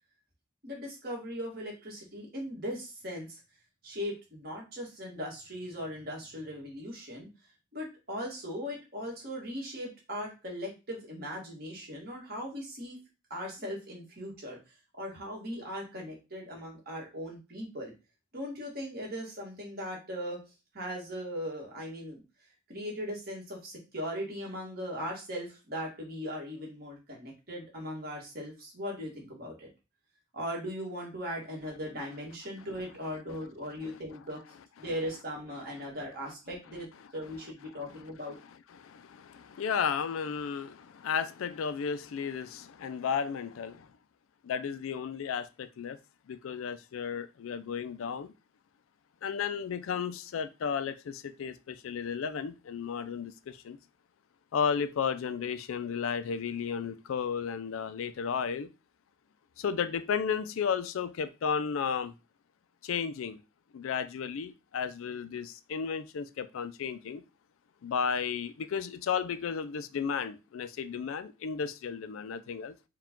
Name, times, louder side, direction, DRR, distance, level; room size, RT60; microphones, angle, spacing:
voice 1, 0.6-3.4 3.8-7.3 7.7-13.0 13.3-14.6 15.0-17.9 18.3-20.4 20.7-22.2 22.7-29.7 30.3-34.4 34.8-38.4, equal, 50° right, 1.7 m, -39 dB
voice 2, 38.8-43.9 44.4-46.0 46.3-48.3 49.2-53.8 54.5-58.7 59.6-62.1 62.8-63.4 63.7-67.2 67.8-72.7, left 6 dB, 90° left, 0.4 m, -33 dB
4.6 x 2.3 x 3.6 m
head